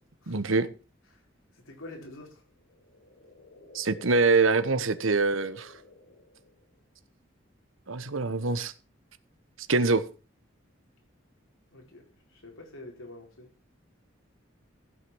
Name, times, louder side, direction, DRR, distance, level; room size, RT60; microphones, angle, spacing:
voice 1, 0.3-0.7 3.7-5.7 7.9-8.7 9.7-10.0, right 3 dB, 85° right, 1.2 m, -24 dB
voice 2, 1.5-2.4 11.7-12.0 12.3-13.5, left 2 dB, 90° left, 4.6 m, -46 dB
sound 1, 2.6-6.8, left 2 dB, 70° left, 2.2 m, -50 dB
15.5 x 6.6 x 6.2 m
head